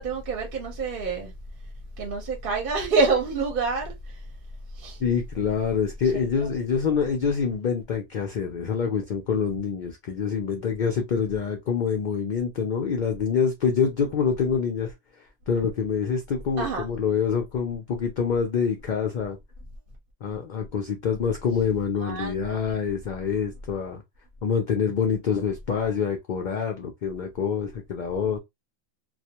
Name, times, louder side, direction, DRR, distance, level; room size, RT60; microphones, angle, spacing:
voice 1, 0.0-1.3 2.0-4.2 4.8-5.0 16.6-16.8 22.0-22.6, right 4 dB, 50° right, 0.8 m, -27 dB
voice 2, 5.0-14.9 15.5-19.4 20.2-24.0 24.4-28.4, left 6 dB, 65° left, 0.4 m, -26 dB
2.3 x 2.1 x 2.8 m
omnidirectional pair, 1.3 m